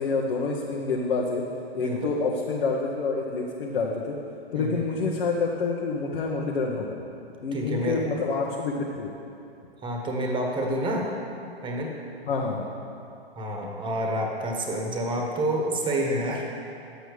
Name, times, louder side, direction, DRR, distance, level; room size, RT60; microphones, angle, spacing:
voice 1, 0.0-1.4 1.7-4.2 4.5-7.0 7.4-9.1 12.3-12.7, left 4 dB, 60° left, -2 dB, 1.2 m, -27 dB
voice 2, 1.8-2.2 4.5-4.8 7.5-8.0 9.8-11.1 11.6-12.0 13.3-16.6, right 1 dB, 15° right, 1 dB, 1.3 m, -28 dB
10.5 x 7.9 x 4.8 m, 2.7 s
figure-of-eight pair, 120°, 31 cm